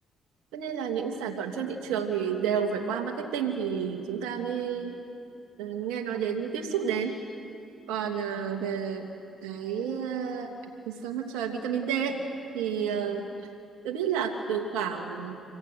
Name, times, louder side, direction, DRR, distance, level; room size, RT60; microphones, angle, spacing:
voice 1, 0.5-4.9 5.6-7.2 7.9-9.1 9.4-10.5 10.9-12.2 12.5-13.3 13.8-15.3, right 7 dB, 85° right, 3 dB, 2.7 m, -30 dB
27.0 x 22.5 x 9.4 m, 2.7 s
supercardioid pair, 60°, 0 cm